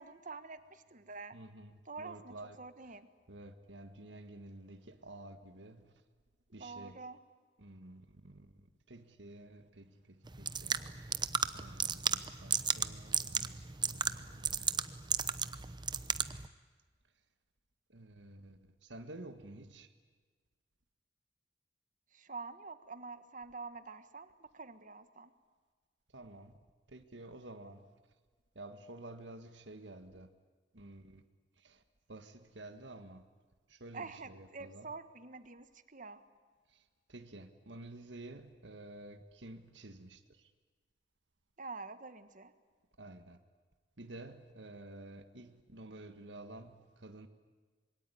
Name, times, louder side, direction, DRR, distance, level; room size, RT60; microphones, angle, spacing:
voice 1, 0.0-1.4 1.8-3.1 6.5-7.2 22.1-25.3 33.9-36.2 41.6-42.5, right 4 dB, 45° right, 1.6 m, -47 dB
voice 2, 1.3-2.6 2.8-3.0 3.3-5.9 6.5-7.0 7.6-8.5 8.9-11.1 11.5-14.7 17.9-19.9 26.1-26.5 26.9-27.9 28.5-30.3 30.7-31.2 31.6-31.8 32.1-33.3 33.7-35.0 36.7-36.8 37.1-40.5 43.0-43.4 44.0-47.3, right 2 dB, 80° right, 1.7 m, -51 dB
sound 1, 10.2-16.5, right 6 dB, 25° right, 0.9 m, -35 dB
26.5 x 22.5 x 9.9 m
head